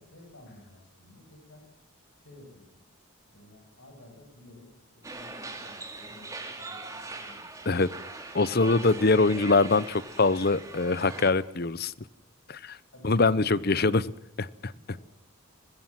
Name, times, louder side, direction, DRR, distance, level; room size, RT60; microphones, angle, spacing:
voice 1, 0.0-1.7 2.2-2.8 3.3-7.7 12.9-14.0 14.3-14.5 14.7-15.0, left 1 dB, 70° left, 3 dB, 7.9 m, -53 dB
sound 1, 5.0-11.3, right 3 dB, 15° right, 3.0 m, -41 dB
voice 2, 8.3-11.9 12.5-12.8 13.0-14.0 14.4-14.7, left 3 dB, 45° left, 18 dB, 0.8 m, -23 dB
24.5 x 21.0 x 7.6 m, 0.80 s
head